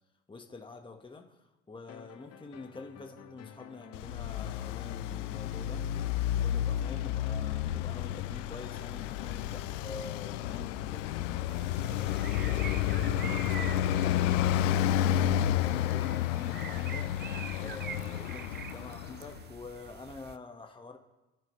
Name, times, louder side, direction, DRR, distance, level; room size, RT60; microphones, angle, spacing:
voice 1, 0.3-5.9 6.3-17.1 17.6-21.0, left 3 dB, 15° left, 3 dB, 1.9 m, -47 dB
sound 1, 1.9-15.4, left 8 dB, 40° left, 1.8 m, -51 dB
Traffic noise roadway noise, 3.9-19.4, left 11 dB, 75° left, 0.8 m, -31 dB
sound 2, 11.5-20.4, right 8 dB, 25° right, 0.7 m, -45 dB
29.0 x 13.0 x 3.4 m, 1.1 s
hypercardioid pair, 75°, 37 cm